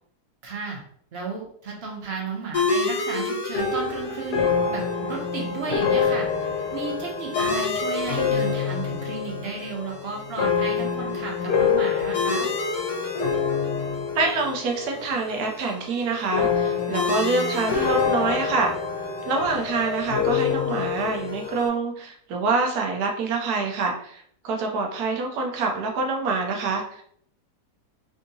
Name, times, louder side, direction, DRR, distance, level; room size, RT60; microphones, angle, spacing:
voice 1, 0.4-0.8 1.1-12.5, right 4 dB, 50° right, 0 dB, 0.8 m, -34 dB
sound 1, 2.5-21.7, left 3 dB, 70° left, 1.3 m, -33 dB
sound 2, 3.5-15.0 15.3-15.9 16.3-21.7, left 6 dB, 85° left, 1.3 m, -26 dB
voice 2, 14.1-18.7 19.2-27.0, right 3 dB, 75° right, 2 dB, 1.1 m, -26 dB
3.5 x 2.7 x 2.7 m, 0.62 s
omnidirectional pair, 1.7 m